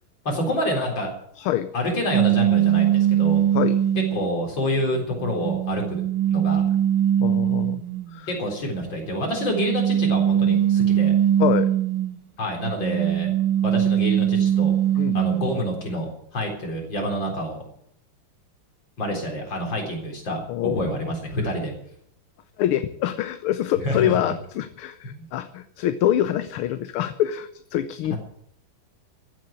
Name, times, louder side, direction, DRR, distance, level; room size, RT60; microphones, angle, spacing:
voice 1, 0.2-1.1 1.7-3.4 3.9-6.0 6.3-6.6 8.3-11.1 12.4-13.3 13.6-14.7 15.1-17.6 19.0-21.7 23.8-24.1 25.0-25.3 28.1-28.2, equal, 60° left, 1 dB, 4.7 m, -27 dB
voice 2, 1.4-1.7 3.5-3.8 7.2-7.8 8.1-8.3 11.4-11.7 15.0-15.3 20.5-21.1 22.6-28.2, left 12 dB, 80° left, 11 dB, 1.7 m, -25 dB
sound 1, 2.1-4.3 4.9-8.1 9.2-12.2 12.6-15.6, right 10 dB, 70° right, 1.8 m, -21 dB
15.0 x 8.7 x 8.9 m, 0.67 s
omnidirectional pair, 2.4 m